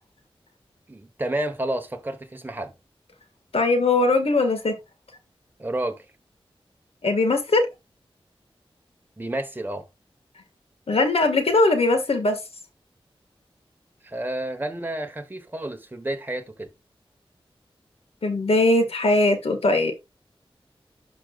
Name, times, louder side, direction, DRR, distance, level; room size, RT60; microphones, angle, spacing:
voice 1, 0.9-2.7 5.6-6.0 9.2-9.8 14.0-16.7, right 1 dB, 20° right, 1.1 m, -30 dB
voice 2, 3.5-4.7 7.0-7.7 10.9-12.4 18.2-19.9, left 2 dB, 85° left, 1.6 m, -20 dB
11.5 x 5.2 x 2.3 m
wide cardioid pair, 60°, 10 cm